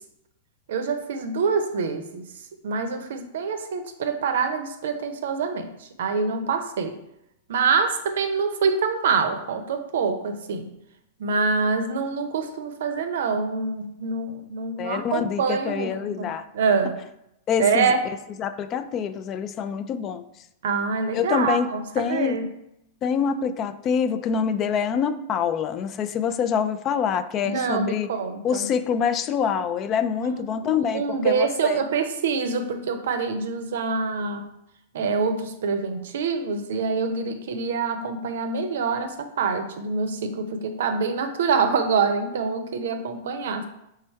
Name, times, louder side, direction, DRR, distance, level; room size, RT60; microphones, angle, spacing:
voice 1, 0.7-2.2 2.6-7.0 7.5-10.7 11.2-17.0 17.6-18.0 20.6-22.5 27.4-28.7 30.2-34.5 34.9-43.7, right 5 dB, 70° right, 7 dB, 0.5 m, -25 dB
voice 2, 14.8-16.4 17.5-17.9 18.4-20.2 21.1-21.7 22.0-22.4 23.0-28.1 28.4-31.8, left 7 dB, 35° left, 11 dB, 0.3 m, -25 dB
3.4 x 3.3 x 4.4 m, 0.82 s
hypercardioid pair, 110°, 0 cm